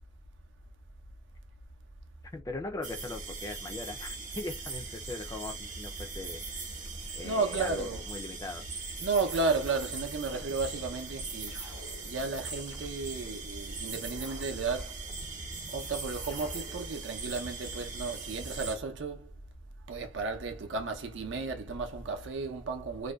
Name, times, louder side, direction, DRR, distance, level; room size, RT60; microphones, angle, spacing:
voice 1, 2.3-6.4 7.1-8.6, left 2 dB, 20° left, 0.3 m, -40 dB
sound 1, 2.8-18.8, right 3 dB, 45° right, 0.9 m, -40 dB
voice 2, 7.2-8.0 9.0-11.6 12.0-15.0 15.7-19.3 19.9-23.1, right 4 dB, 75° right, 0.5 m, -33 dB
sound 2, 8.5-9.8 10.3-11.0 11.5-13.4 13.9-15.8 16.3-17.0, left 2 dB, 85° left, 0.7 m, -51 dB
2.5 x 2.2 x 2.2 m
head